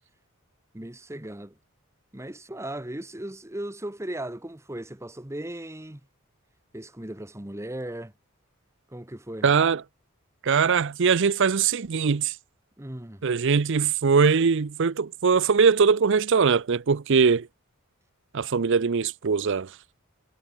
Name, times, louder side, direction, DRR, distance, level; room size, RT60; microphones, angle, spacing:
voice 1, 0.7-1.6 2.1-6.0 6.7-8.1 8.9-9.5 12.8-13.2, right 1 dB, 15° right, 1.3 m, -37 dB
voice 2, 9.4-9.8 10.4-12.4 13.2-17.5 18.3-19.8, right 5 dB, 60° right, 0.5 m, -21 dB
head